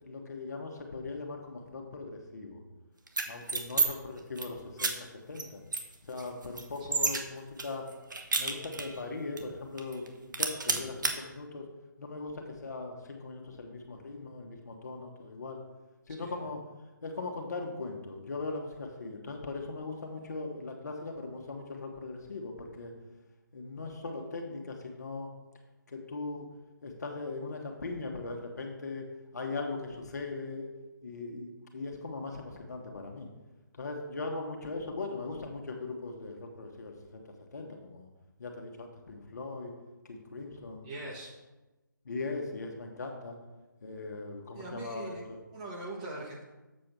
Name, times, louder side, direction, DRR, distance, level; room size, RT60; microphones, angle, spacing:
voice 1, 0.0-2.6 3.3-5.6 6.1-7.9 8.3-11.7 12.0-15.6 16.1-16.6 17.0-22.9 23.5-25.3 25.9-26.5 26.8-29.1 29.3-30.7 31.0-33.3 33.8-37.2 37.5-38.1 38.4-39.7 40.1-40.9 42.0-43.4 43.8-45.4, left 3 dB, 55° left, 2 dB, 1.5 m, -39 dB
sound 1, 3.1-3.9 4.2-4.5 4.8-4.9 5.4-5.5 5.7-7.2 7.6-9.0 9.4-9.5 9.8-10.1 10.3-11.1, right 4 dB, 65° right, 1.3 m, -30 dB
voice 2, 40.8-41.3 44.5-45.2 45.5-46.4, right 2 dB, 20° right, -2 dB, 1.3 m, -42 dB
7.6 x 5.1 x 6.1 m, 1.1 s
figure-of-eight pair, 155°, 11 cm